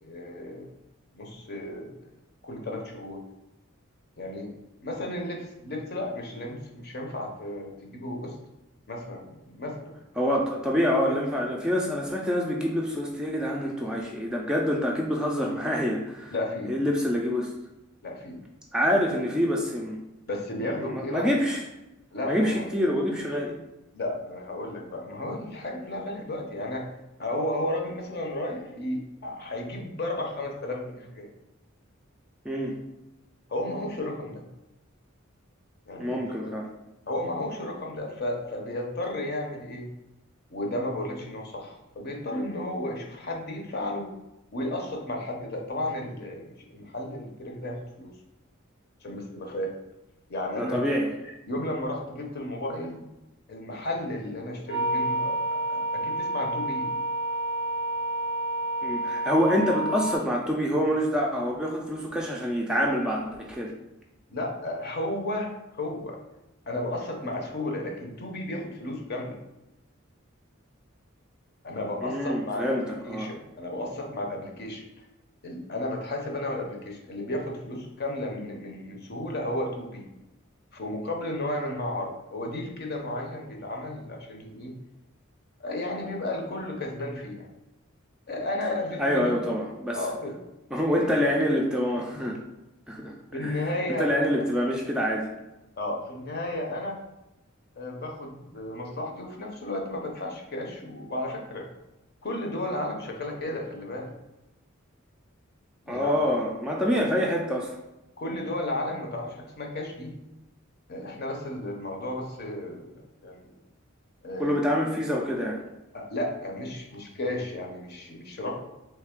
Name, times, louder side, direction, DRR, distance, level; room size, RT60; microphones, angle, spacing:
voice 1, 0.0-0.7 1.1-1.9 2.4-3.2 4.2-4.5 4.8-8.4 8.9-9.9 11.0-11.2 16.3-16.7 18.0-18.4 20.3-21.3 22.1-22.6 23.9-26.9 27.2-31.3 33.5-34.4 35.9-36.5 37.1-39.9 40.5-44.1 44.5-48.1 49.0-49.7 50.3-50.9 51.5-53.0 53.5-56.9 64.3-66.2 66.7-69.4 71.6-74.8 75.4-80.1 80.7-84.7 85.6-87.5 88.3-89.4 89.9-90.3 91.0-91.1 93.3-94.5 95.8-97.0 97.8-101.7 102.2-104.1 105.8-106.3 106.9-107.0 108.2-110.1 110.9-113.5 114.2-114.6 115.9-118.6, left 1 dB, 50° left, 1 dB, 0.7 m, -33 dB
voice 2, 10.2-16.3 16.7-17.5 18.7-20.0 20.8-21.6 22.3-23.6 32.4-32.7 36.0-36.7 50.6-51.1 58.8-63.7 72.0-73.3 89.0-90.0 90.7-92.4 92.9-93.1 93.4-95.3 105.9-107.8 114.4-115.6, equal, 5° right, -2 dB, 0.4 m, -26 dB
sound 1, 54.7-60.2, right 1 dB, 70° left, 1.0 m, -29 dB
3.2 x 3.2 x 3.6 m, 0.96 s
head